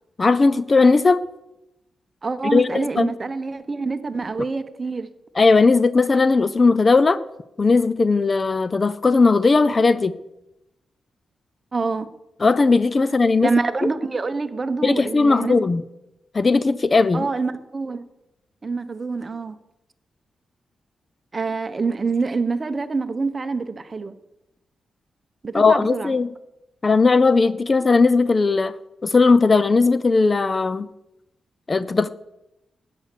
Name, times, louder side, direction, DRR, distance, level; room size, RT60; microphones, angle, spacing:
voice 1, 0.2-1.2 2.5-3.1 5.4-7.2 7.6-10.1 12.4-13.5 14.8-15.8 16.3-17.3 25.5-26.3 26.8-28.7 29.0-30.9 31.7-32.1, left 4 dB, 35° left, 16 dB, 0.5 m, -17 dB
voice 2, 2.2-5.1 11.7-12.1 13.4-15.6 17.1-18.0 18.6-19.5 21.3-24.1 25.4-26.1, right 4 dB, 35° right, 11 dB, 1.0 m, -26 dB
13.0 x 9.3 x 6.8 m, 0.90 s
cardioid pair, 100°, 0 cm